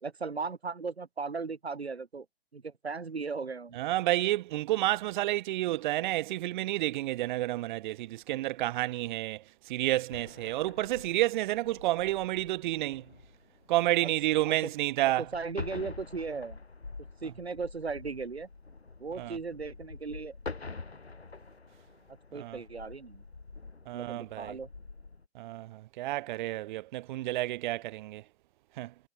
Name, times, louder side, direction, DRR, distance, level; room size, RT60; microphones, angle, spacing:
voice 1, 0.0-2.3 2.5-3.8 14.0-14.1 14.4-14.7 15.0-16.6 17.2-18.5 19.0-20.4 22.3-23.2 23.9-24.7, right 4 dB, 90° right, 1.4 m, -37 dB
voice 2, 3.7-13.0 13.7-15.2 19.2-19.4 22.3-22.6 23.9-24.6 25.3-28.2 28.8-28.9, right 16 dB, 50° right, 1.2 m, -30 dB
sound 1, 10.1-25.3, left 3 dB, 85° left, 5.4 m, -47 dB
figure-of-eight pair, 110°, 31 cm